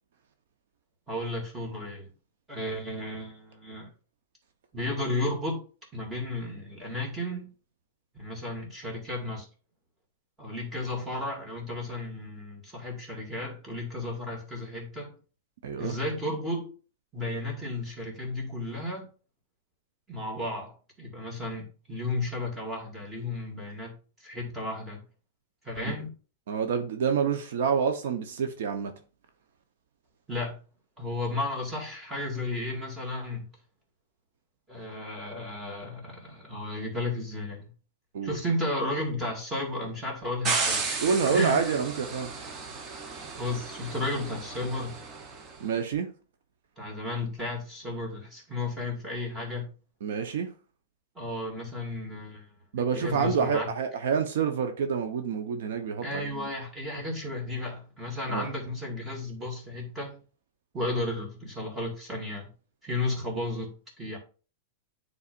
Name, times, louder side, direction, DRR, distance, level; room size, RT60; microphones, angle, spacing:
voice 1, 1.1-2.1 2.5-3.9 4.7-5.6 5.9-7.5 8.1-9.5 10.4-15.1 15.8-16.7 17.1-19.0 20.1-25.0 25.6-26.1 30.3-30.6 31.0-33.5 34.7-37.7 38.2-41.8 43.3-45.0 46.8-49.7 51.2-52.5 52.9-53.7 56.0-60.2 60.7-62.5 62.8-64.2, left 2 dB, 10° right, 2.1 m, -33 dB
voice 2, 15.6-16.0 26.5-28.9 38.1-38.4 41.0-42.3 45.6-46.1 50.0-50.5 52.7-56.5 58.3-58.5, right 6 dB, 75° right, 0.9 m, -27 dB
sound 1, 40.4-45.6, right 4 dB, 30° right, 0.8 m, -34 dB
9.8 x 4.0 x 2.5 m
supercardioid pair, 155°, 0 cm